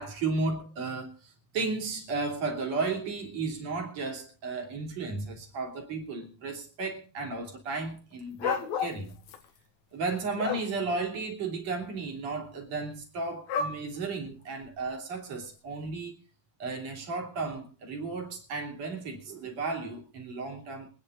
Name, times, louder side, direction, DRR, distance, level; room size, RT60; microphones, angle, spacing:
voice 1, 0.0-9.2 9.9-16.1 16.6-20.9, right 3 dB, 50° right, 4.3 m, -34 dB
sound 1, 8.4-9.4 10.0-10.6 13.5-13.8 14.6-14.7, left 6 dB, 65° left, 2.3 m, -31 dB
25.5 x 9.7 x 4.0 m
omnidirectional pair, 3.9 m